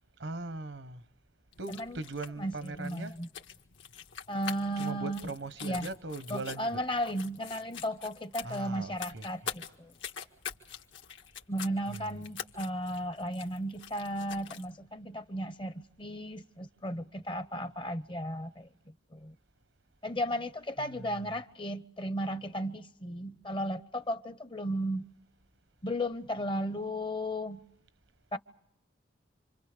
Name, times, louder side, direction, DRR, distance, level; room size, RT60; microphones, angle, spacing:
voice 1, 0.2-1.0 1.6-3.1 4.8-6.8 8.4-9.3 20.8-21.4, right 2 dB, 70° right, 1.1 m, -40 dB
sound 1, 1.5-14.7, left 7 dB, 75° left, 1.8 m, -45 dB
voice 2, 1.7-2.0 2.4-3.3 4.3-5.3 5.6-5.9 6.3-9.9 11.5-18.7 19.1-19.3 20.0-25.1 25.8-27.6 28.3-28.4, equal, 25° left, 0.8 m, -35 dB
27.5 x 26.5 x 5.1 m
head